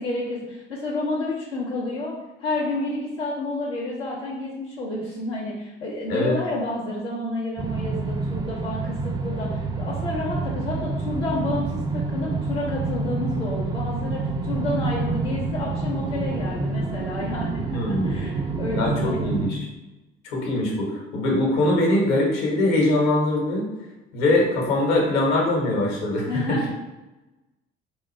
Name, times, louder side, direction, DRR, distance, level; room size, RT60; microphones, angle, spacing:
voice 1, 0.0-19.3 26.3-26.7, left 2 dB, 85° left, -9 dB, 0.7 m, -30 dB
sound 1, 7.6-19.5, right 3 dB, 15° right, 0.3 m, -28 dB
voice 2, 17.7-18.1 18.7-19.7 20.2-23.7 24.1-26.7, left 1 dB, 60° left, -1 dB, 1.0 m, -22 dB
3.9 x 2.4 x 3.0 m, 1.0 s
figure-of-eight pair, 50°, 31 cm